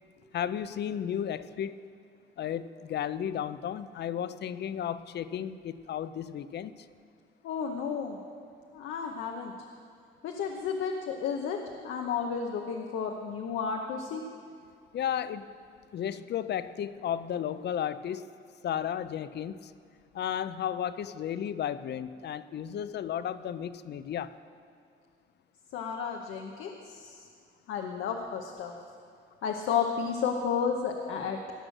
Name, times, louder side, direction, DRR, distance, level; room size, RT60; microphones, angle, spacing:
voice 1, 0.3-1.8 2.4-6.8 14.9-15.6 15.9-18.2 18.6-19.7 20.1-24.3, left 9 dB, 60° left, 14 dB, 0.5 m, -33 dB
voice 2, 7.4-8.2 8.7-9.5 10.2-11.6 11.8-14.2 25.7-27.3 27.7-28.7 29.4-31.4, left 6 dB, 80° left, 2 dB, 0.9 m, -32 dB
17.5 x 6.3 x 6.5 m, 2.2 s
cardioid pair, 90°, 20 cm